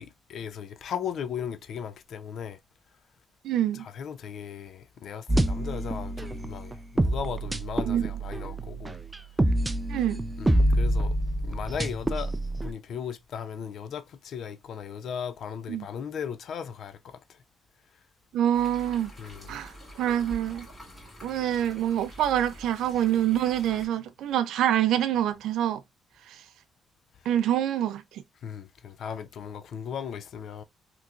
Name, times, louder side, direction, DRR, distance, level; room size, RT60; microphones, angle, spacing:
voice 1, 0.0-2.6 3.7-9.0 10.4-11.2 11.4-17.2 19.2-19.5 28.4-30.6, left 8 dB, 65° left, 0.4 m, -37 dB
voice 2, 3.4-3.9 7.9-8.0 9.9-10.2 15.7-15.9 18.3-19.1 19.5-20.7 21.2-25.8 26.3-26.4 27.3-28.2, right 11 dB, 80° right, 0.4 m, -26 dB
sound 1, 5.3-12.7, right 1 dB, 15° right, 0.4 m, -27 dB
sound 2, 18.5-23.9, equal, 25° left, 2.2 m, -46 dB
3.6 x 3.0 x 2.3 m
cardioid pair, 90°, 0 cm